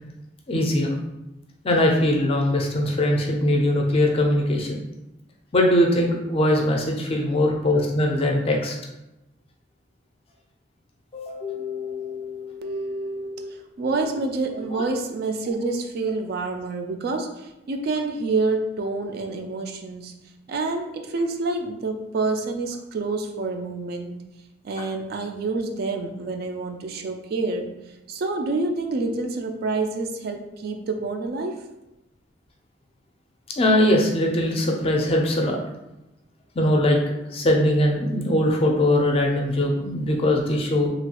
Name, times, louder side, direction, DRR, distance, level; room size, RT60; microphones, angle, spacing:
voice 1, 0.5-1.0 1.6-4.8 5.5-8.8 11.1-12.7 13.8-14.0 14.7-14.8 33.6-35.6 36.6-37.0 37.3-40.9, left 1 dB, 30° left, 1 dB, 0.4 m, -21 dB
voice 2, 12.6-20.1 20.5-24.2 24.6-27.7 28.1-31.5, right 3 dB, 55° right, 4 dB, 0.3 m, -28 dB
2.9 x 2.3 x 2.8 m, 0.94 s
head